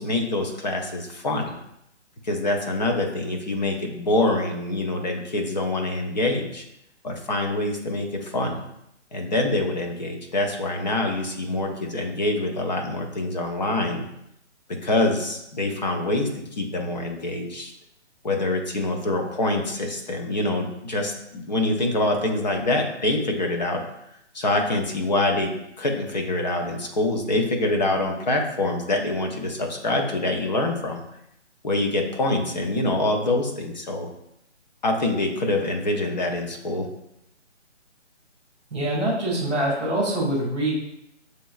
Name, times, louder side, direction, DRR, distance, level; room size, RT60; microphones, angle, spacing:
voice 1, 0.0-1.6 2.2-6.6 7.0-8.6 9.1-14.0 14.7-17.7 18.2-23.8 24.3-31.0 31.6-34.1 34.8-36.9, left 2 dB, 40° left, 2 dB, 0.6 m, -25 dB
voice 2, 38.7-40.7, right 1 dB, ahead, -22 dB, 0.6 m, -24 dB
6.7 x 3.2 x 2.3 m, 0.81 s
hypercardioid pair, 165°, 36 cm